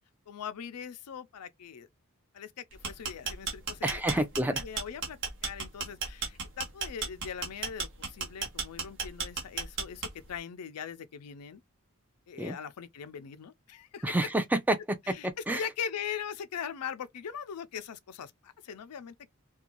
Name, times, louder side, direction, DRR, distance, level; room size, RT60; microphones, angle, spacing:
voice 1, 0.3-1.9 2.3-11.6 12.3-14.2 15.1-19.2, left 7 dB, 90° left, 0.4 m, -41 dB
sound 1, 2.7-10.4, right 5 dB, 55° right, 1.0 m, -34 dB
voice 2, 3.8-4.6 12.4-12.5 14.0-15.6, right 1 dB, 10° right, 0.4 m, -29 dB
2.5 x 2.3 x 2.9 m
head